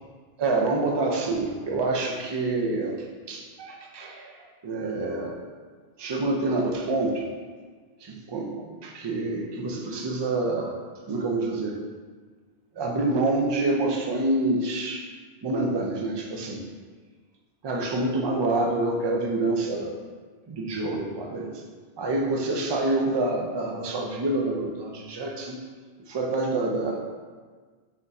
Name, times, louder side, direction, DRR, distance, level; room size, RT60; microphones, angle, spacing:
voice 1, 0.4-4.3 4.6-5.4 6.0-7.3 8.0-10.8 11.1-11.8 12.8-15.1 15.4-16.6 17.6-19.9 20.5-21.5 22.0-25.6 26.1-27.0, right 2 dB, 40° right, 0 dB, 0.4 m, -27 dB
4.2 x 2.6 x 4.0 m, 1.5 s
omnidirectional pair, 1.0 m